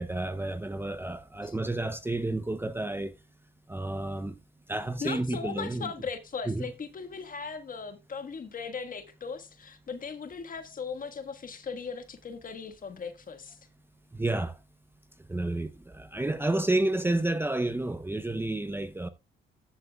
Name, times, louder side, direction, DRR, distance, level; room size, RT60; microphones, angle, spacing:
voice 1, 0.0-3.1 3.7-4.3 4.7-5.9 6.5-6.7 14.1-14.5 15.3-19.1, right 2 dB, 10° right, 0.6 m, -30 dB
voice 2, 5.0-13.6, left 5 dB, 45° left, 1.5 m, -38 dB
14.0 x 8.3 x 2.3 m
cardioid pair, 90°, 20 cm